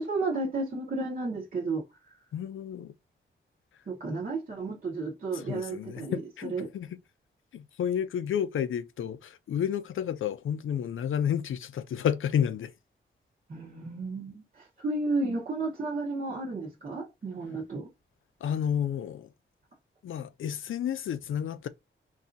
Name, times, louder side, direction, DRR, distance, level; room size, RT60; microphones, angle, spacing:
voice 1, 0.0-2.2 3.9-6.7 13.5-17.9, right 3 dB, 45° right, 0.9 m, -33 dB
voice 2, 2.3-2.9 5.5-6.9 7.5-12.7 18.4-19.3 20.0-21.7, left 9 dB, 90° left, 0.5 m, -31 dB
4.0 x 2.7 x 2.5 m
wide cardioid pair, 150°, 20 cm